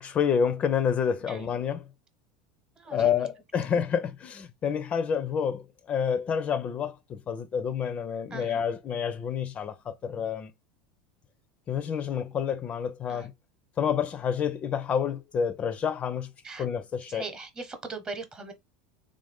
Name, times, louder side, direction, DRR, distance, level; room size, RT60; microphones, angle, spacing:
voice 1, 0.0-1.8 2.9-10.5 11.7-13.3 13.8-16.3 16.6-17.2, left 7 dB, 35° left, 0.4 m, -28 dB
voice 2, 2.8-3.7 8.3-8.6 13.1-13.3 16.4-16.7 17.1-18.5, right 4 dB, 25° right, 1.0 m, -40 dB
3.5 x 2.6 x 3.5 m
supercardioid pair, 105°, 4 cm